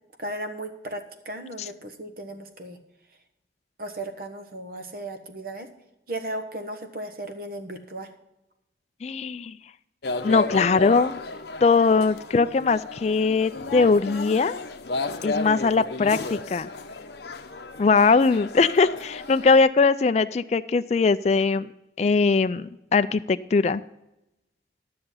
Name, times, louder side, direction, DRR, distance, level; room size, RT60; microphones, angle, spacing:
voice 1, 0.2-2.8 3.8-5.7 6.1-8.1, right 1 dB, 50° right, 6 dB, 1.3 m, -35 dB
voice 2, 9.0-9.5 10.2-11.2 11.6-14.6 15.2-16.7 17.8-21.7 22.0-23.8, left 4 dB, 35° left, 11 dB, 0.3 m, -21 dB
sound 1, 10.0-19.6, left 3 dB, 60° left, 0.8 m, -33 dB
12.5 x 6.7 x 5.5 m, 0.91 s
head